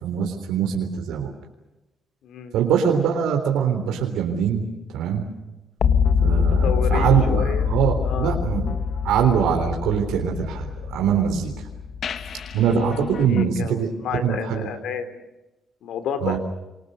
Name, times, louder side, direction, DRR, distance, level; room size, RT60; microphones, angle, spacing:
voice 1, 0.0-1.3 2.5-4.7 4.9-5.3 6.2-8.7 9.0-11.5 12.5-14.7 16.2-16.4, right 8 dB, 90° right, 3 dB, 3.7 m, -23 dB
voice 2, 2.2-2.6 6.3-7.8 8.0-8.4 13.2-15.2 15.8-16.4, left 7 dB, 80° left, 10 dB, 3.6 m, -30 dB
sound 1, 5.8-13.5, left 6 dB, 60° left, 1.5 m, -24 dB
27.5 x 24.0 x 6.7 m, 1.0 s
cardioid pair, 90°, 0 cm